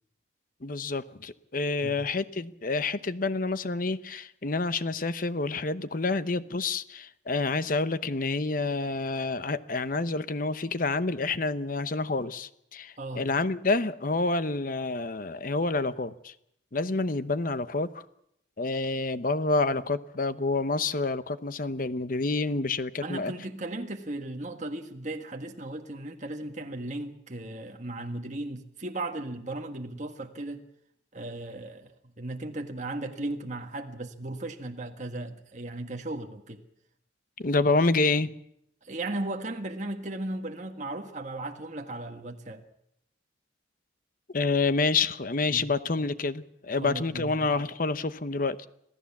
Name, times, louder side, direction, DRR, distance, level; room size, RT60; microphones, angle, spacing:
voice 1, 0.6-16.3 16.7-18.0 18.6-23.3 37.4-38.3 44.3-48.7, left 3 dB, 50° left, 0.9 m, -28 dB
voice 2, 13.0-13.3 23.0-30.7 31.1-36.6 38.8-42.6 45.5-45.6 46.8-47.5, right 2 dB, 40° right, 1.6 m, -36 dB
26.0 x 16.5 x 7.2 m
head